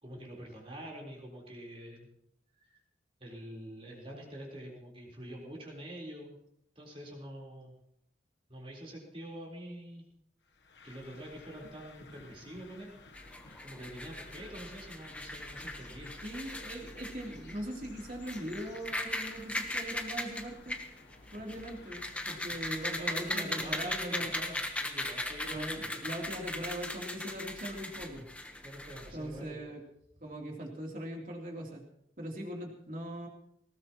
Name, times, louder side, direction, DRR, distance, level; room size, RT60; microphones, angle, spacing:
voice 1, 0.0-2.1 2.6-2.8 3.2-6.4 6.8-7.7 8.5-10.0 10.8-12.9 13.6-16.1 22.9-26.0 28.6-29.6, right 1 dB, 30° right, -3 dB, 4.1 m, -46 dB
sound 1, 10.5-23.9, left 3 dB, 80° left, 1.2 m, -55 dB
sound 2, 13.1-29.4, left 1 dB, 5° left, 1.1 m, -39 dB
voice 2, 16.2-20.8 21.3-24.3 25.4-28.2 29.1-29.8 30.2-31.8 32.2-33.3, right 1 dB, 45° right, 0 dB, 3.2 m, -40 dB
19.0 x 18.5 x 3.0 m, 0.75 s
head